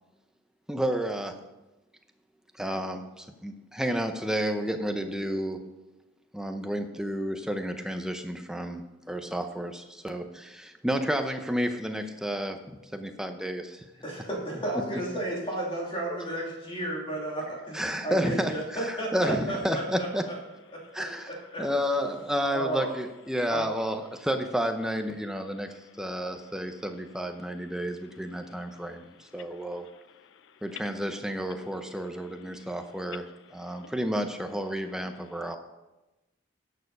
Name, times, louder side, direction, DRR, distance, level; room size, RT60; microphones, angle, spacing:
voice 1, 0.7-1.4 2.6-5.6 6.3-13.8 16.1-16.2 17.7-20.2 20.9-21.3 21.6-29.9 30.6-33.2 33.5-35.6, equal, 5° right, 6 dB, 0.6 m, -31 dB
voice 2, 14.0-20.4 20.7-21.6 22.5-22.9 23.5-23.7, right 1 dB, 25° left, -3 dB, 2.7 m, -33 dB
voice 3, 28.4-29.0 29.4-30.6 32.5-32.6 33.6-33.9, left 8 dB, 65° left, 14 dB, 0.4 m, -57 dB
11.0 x 6.7 x 5.4 m, 1.0 s
head